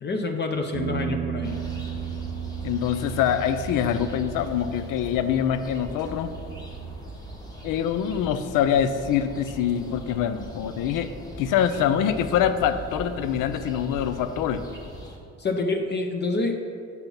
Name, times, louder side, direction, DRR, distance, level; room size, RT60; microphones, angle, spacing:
voice 1, 0.0-1.6 15.4-16.6, left 3 dB, 35° left, 3 dB, 0.5 m, -27 dB
sound 1, 0.7-7.0, right 9 dB, 50° right, 0.6 m, -35 dB
sound 2, 1.4-15.2, equal, 10° left, 1.1 m, -40 dB
voice 2, 2.6-6.3 7.6-11.1 11.4-14.6, left 9 dB, 85° left, 11 dB, 0.5 m, -24 dB
6.0 x 5.4 x 5.3 m, 2.5 s
cardioid pair, 100°, 31 cm